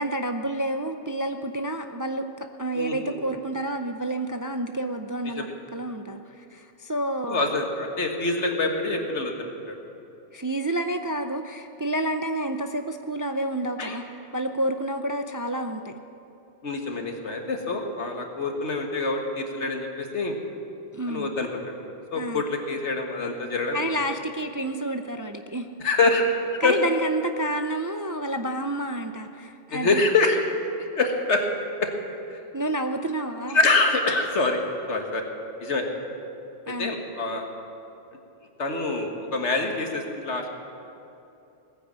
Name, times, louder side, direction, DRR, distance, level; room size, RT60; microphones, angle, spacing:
voice 1, 0.0-7.5 10.3-14.0 14.3-15.9 20.9-21.3 22.1-22.4 23.7-25.7 26.6-30.0 32.5-33.6 36.7-36.9, right 1 dB, 30° right, 6 dB, 0.4 m, -29 dB
voice 2, 2.8-3.1 5.4-5.5 7.3-9.8 13.8-14.0 16.6-20.4 21.1-21.7 22.1-23.8 25.8-26.2 26.6-26.8 29.7-30.4 30.8-31.5 31.8-31.9 32.3-32.4 33.5-34.6 34.9-35.2 35.6-35.9 36.8-37.5 38.6-40.5, left 3 dB, 85° left, 3 dB, 1.9 m, -25 dB
18.5 x 9.9 x 7.5 m, 2.8 s
omnidirectional pair, 1.2 m